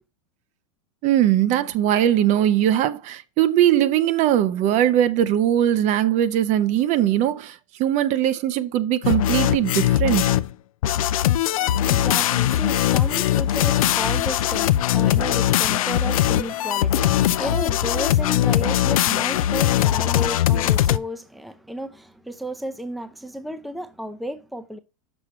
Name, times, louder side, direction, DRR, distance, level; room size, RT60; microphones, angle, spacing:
voice 1, 1.0-10.3, right 11 dB, 40° right, 0.7 m, -20 dB
sound 1, 9.0-10.5 10.8-21.0, left 12 dB, 80° left, 0.5 m, -20 dB
voice 2, 11.3-24.8, equal, ahead, 0.6 m, -33 dB
6.3 x 4.8 x 4.2 m
hypercardioid pair, 115°, 18 cm